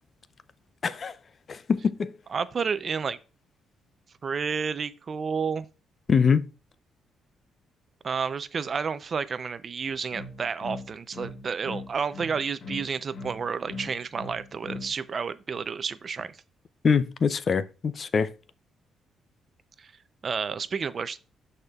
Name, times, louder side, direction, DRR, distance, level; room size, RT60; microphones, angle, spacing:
voice 1, 0.8-1.2 1.5-2.1 6.1-6.4 16.8-18.3, left 6 dB, 45° left, 0.5 m, -24 dB
voice 2, 2.3-3.2 4.2-5.7 8.0-16.4 19.8-19.9 20.2-21.2, right 5 dB, 45° right, 0.5 m, -30 dB
sound 1, 9.9-15.0, left 2 dB, 60° left, 1.0 m, -39 dB
11.5 x 4.3 x 2.4 m
cardioid pair, 90°, 0 cm